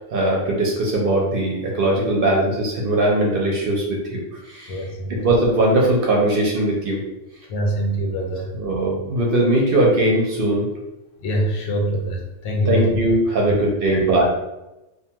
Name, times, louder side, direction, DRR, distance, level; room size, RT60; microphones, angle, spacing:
voice 1, 0.1-3.8 4.1-4.2 4.5-4.8 5.1-7.0 8.5-10.7 12.7-14.3, right 1 dB, 60° right, -2 dB, 0.6 m, -20 dB
voice 2, 4.7-5.2 7.5-8.5 11.2-13.0 13.4-13.6 13.9-14.0, right 1 dB, 80° left, 0 dB, 1.0 m, -24 dB
2.5 x 2.2 x 2.7 m, 0.97 s
omnidirectional pair, 1.3 m